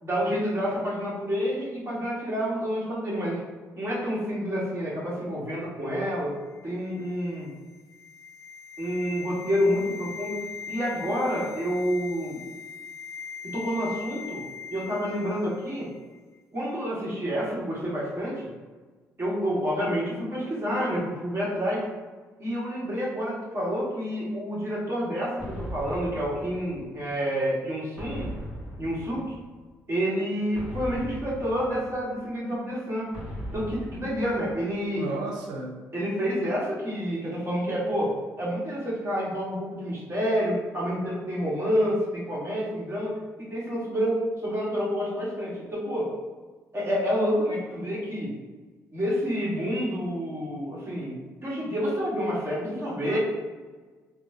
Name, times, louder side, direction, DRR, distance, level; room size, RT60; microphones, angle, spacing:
voice 1, 0.0-3.4 3.8-7.5 8.8-10.4 10.7-12.4 13.4-14.4 14.7-15.9 16.5-18.5 19.2-21.9 22.4-28.3 28.8-29.4 29.9-33.1 33.5-35.0 35.9-38.1 38.4-46.1 46.7-48.3 48.9-53.2, equal, 35° right, -6 dB, 1.4 m, -28 dB
sound 1, 6.5-16.2, left 6 dB, 45° left, 0.3 m, -41 dB
sound 2, 25.4-27.2 28.0-29.7 30.5-32.3 33.1-34.9, equal, 15° right, 1.3 m, -39 dB
voice 2, 34.9-35.8 52.8-53.2, right 3 dB, 75° right, 0 dB, 0.6 m, -35 dB
3.6 x 2.3 x 2.6 m, 1.4 s
hypercardioid pair, 55°, 7 cm